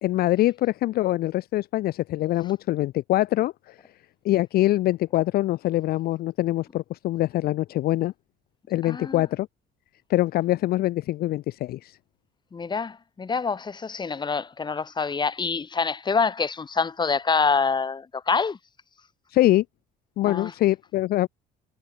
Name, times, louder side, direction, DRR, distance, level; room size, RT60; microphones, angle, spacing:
voice 1, 0.0-3.8 4.2-8.1 8.7-9.5 10.1-12.0 19.3-19.6 20.2-21.3, left 16 dB, 65° left, 0.5 m, -24 dB
voice 2, 8.8-9.2 12.5-18.6 20.3-20.5, left 5 dB, 25° left, 2.2 m, -26 dB
cardioid pair, 110°, 17 cm